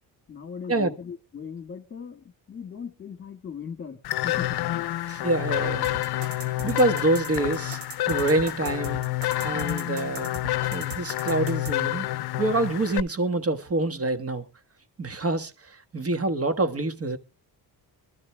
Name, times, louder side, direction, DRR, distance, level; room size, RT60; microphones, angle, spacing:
voice 1, 0.3-4.9, left 6 dB, 30° left, 1.8 m, -39 dB
sound 1, 4.0-13.0, left 15 dB, 70° left, 0.6 m, -29 dB
voice 2, 5.1-5.9 6.4-7.8 8.1-9.0 9.4-10.3 10.7-12.1 12.4-14.4 15.0-17.2, right 2 dB, 35° right, 1.5 m, -26 dB
sound 2, 5.8-11.7, right 3 dB, 65° right, 2.0 m, -38 dB
23.0 x 13.0 x 2.3 m
cardioid pair, 85°, 40 cm